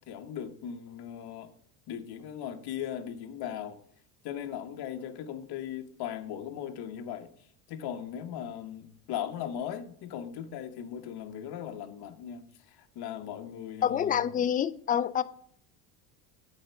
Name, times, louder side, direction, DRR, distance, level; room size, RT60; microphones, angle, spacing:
voice 1, 0.1-1.5 1.9-3.8 4.2-7.3 7.7-14.2, left 9 dB, 55° left, 1.2 m, -38 dB
voice 2, 13.8-15.2, left 9 dB, 20° left, 0.3 m, -27 dB
9.1 x 4.4 x 6.9 m
supercardioid pair, 95°, 47 cm